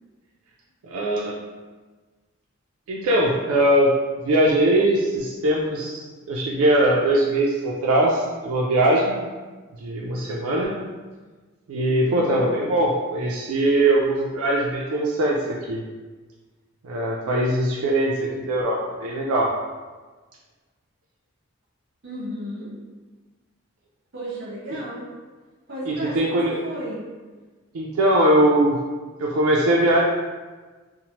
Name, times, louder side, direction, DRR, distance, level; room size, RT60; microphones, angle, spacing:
voice 1, 0.8-1.4 2.9-3.9 4.2-9.2 9.8-10.8 11.7-15.8 16.8-19.5 25.9-26.6 27.7-28.8 29.2-30.0, right 1 dB, 85° right, -3 dB, 0.4 m, -21 dB
voice 2, 12.0-12.6 22.0-22.7 24.1-25.1 25.7-27.0, equal, 50° right, -6 dB, 1.0 m, -34 dB
3.0 x 2.0 x 2.8 m, 1.3 s
head